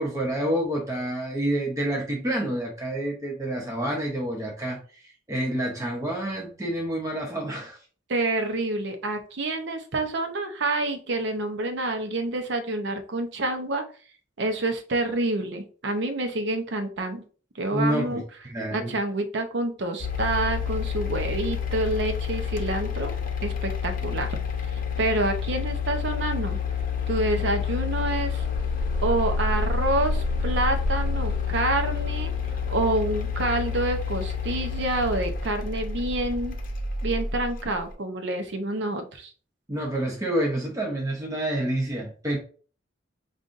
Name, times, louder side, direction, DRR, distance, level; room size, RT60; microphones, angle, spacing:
voice 1, 0.0-7.8 17.7-18.9 39.7-42.4, right 1 dB, 15° right, -1 dB, 0.6 m, -28 dB
voice 2, 8.1-13.8 14.4-17.2 17.5-18.2 18.7-23.1 23.4-24.4 25.0-26.6 27.1-28.4 29.0-32.3 32.7-36.6 37.0-39.3, right 2 dB, 65° right, 6 dB, 0.6 m, -27 dB
sound 1, 20.0-37.8, left 5 dB, 50° left, 0.7 m, -28 dB
5.3 x 2.4 x 2.5 m, 0.40 s
head